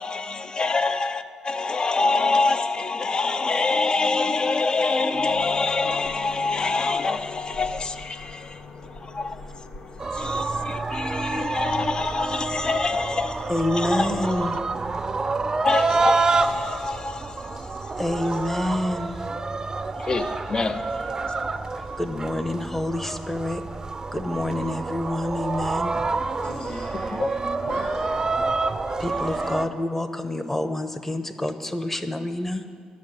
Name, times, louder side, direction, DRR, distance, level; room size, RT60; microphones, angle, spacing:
voice 1, 0.0-9.6 10.1-14.6 15.6-17.9 20.0-21.9 27.2-27.3, left 3 dB, 35° left, 0.8 m, -26 dB
sound 1, 5.1-15.0, left 4 dB, 75° left, 1.2 m, -43 dB
sound 2, 10.0-29.6, right 3 dB, 30° right, 0.7 m, -28 dB
voice 2, 13.5-14.6 17.9-19.3 21.7-23.6 24.1-26.0 29.0-32.8, left 1 dB, 15° left, 1.0 m, -27 dB
voice 3, 26.4-28.4, left 1 dB, 55° left, 4.0 m, -38 dB
10.5 x 7.2 x 9.2 m
cardioid pair, 70°, 2 cm